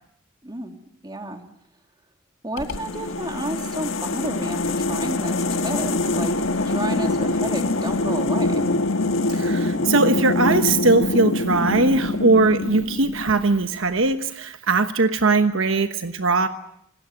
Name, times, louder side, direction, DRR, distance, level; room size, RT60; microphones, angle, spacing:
voice 1, 0.4-0.7 1.0-1.4 2.4-8.7, right 1 dB, 20° right, 4 dB, 2.8 m, -32 dB
sound 1, 2.6-13.7, left 2 dB, 70° left, 1.6 m, -24 dB
voice 2, 9.3-16.5, right 3 dB, 70° right, 9 dB, 1.2 m, -20 dB
26.5 x 19.5 x 9.1 m, 0.75 s
head